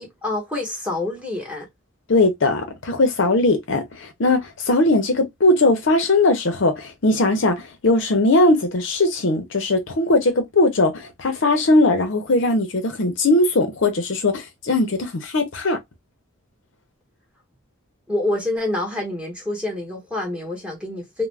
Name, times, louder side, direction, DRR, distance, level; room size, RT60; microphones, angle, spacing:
voice 1, 0.0-1.7 18.1-21.3, left 2 dB, 5° right, 1.0 m, -27 dB
voice 2, 2.1-15.8, left 2 dB, 60° left, 0.6 m, -19 dB
2.4 x 2.1 x 3.2 m
head